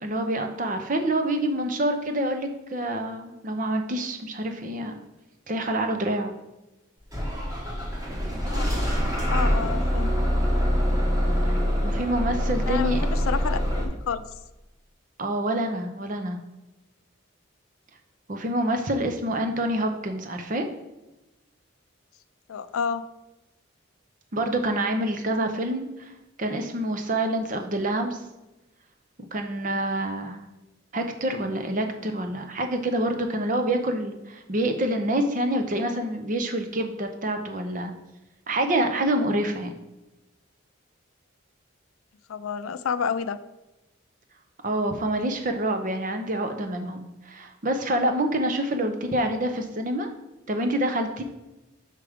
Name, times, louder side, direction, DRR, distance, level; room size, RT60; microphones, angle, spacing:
voice 1, 0.0-4.9 5.5-6.3 11.5-11.6 11.8-13.0 15.2-16.4 18.3-20.7 24.3-26.1 26.4-28.2 29.3-30.4 30.9-37.9 38.5-39.7 44.6-50.1 50.5-51.2, right 1 dB, 40° right, 6 dB, 0.6 m, -27 dB
Bus / Engine starting, 7.1-13.8, equal, 15° right, 1.1 m, -24 dB
voice 2, 8.5-8.8 9.3-10.1 12.6-14.2 22.5-23.1 42.3-43.4, left 6 dB, 85° left, 13 dB, 0.4 m, -30 dB
5.8 x 4.8 x 5.0 m, 1.0 s
head